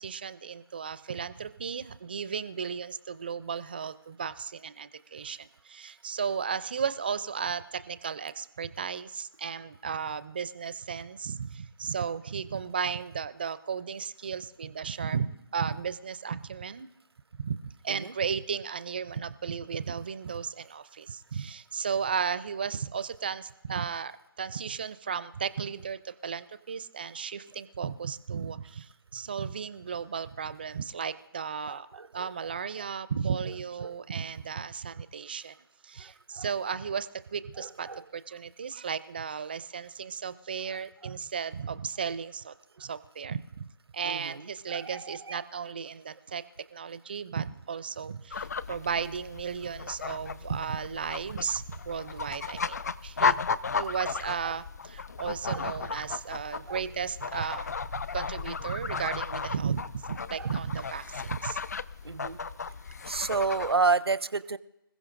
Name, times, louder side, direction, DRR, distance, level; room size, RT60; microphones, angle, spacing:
voice 1, 0.0-16.9 17.4-24.1 24.4-31.9 32.1-35.6 35.8-43.6 43.9-46.4 46.7-53.4 53.8-57.7 57.9-61.6, right 6 dB, 25° right, 15 dB, 0.4 m, -34 dB
voice 2, 31.7-32.3 33.8-33.9 36.0-36.1 36.4-36.5 37.6-38.0 44.0-45.4 54.4-54.5 55.5-55.6 56.7-56.8 60.4-60.5 62.0-62.4 63.1-64.6, right 4 dB, 85° right, 15 dB, 0.7 m, -31 dB
sound 1, 48.3-63.7, left 5 dB, 45° left, 0.4 m, -35 dB
26.0 x 15.5 x 2.5 m, 0.92 s
figure-of-eight pair, 160°, 13 cm